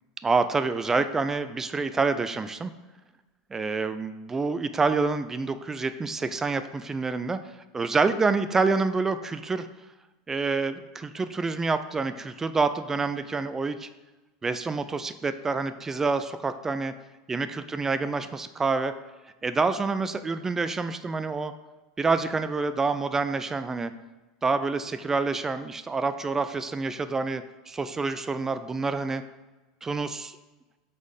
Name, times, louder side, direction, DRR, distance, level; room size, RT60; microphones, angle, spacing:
voice 1, 0.2-2.7 3.5-7.4 7.7-9.7 10.3-13.9 14.4-16.9 17.3-18.9 19.4-21.5 22.0-23.9 24.4-29.2 29.8-30.4, right 4 dB, 15° right, 11 dB, 0.3 m, -27 dB
7.1 x 4.2 x 4.9 m, 1.1 s
supercardioid pair, 135°, 3 cm